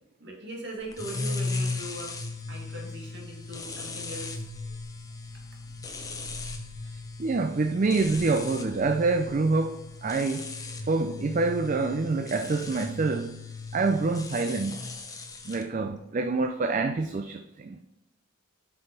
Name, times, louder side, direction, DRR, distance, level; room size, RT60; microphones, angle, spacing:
voice 1, 0.2-2.1 2.5-4.4, right 1 dB, 55° right, 2.1 m, -40 dB
sound 1, 0.9-15.6, left 3 dB, 15° left, 0.6 m, -37 dB
voice 2, 7.2-9.7 10.0-10.5 10.9-13.4 13.7-14.9 15.5-17.8, right 3 dB, 35° right, 0.4 m, -26 dB
7.9 x 5.6 x 4.0 m
head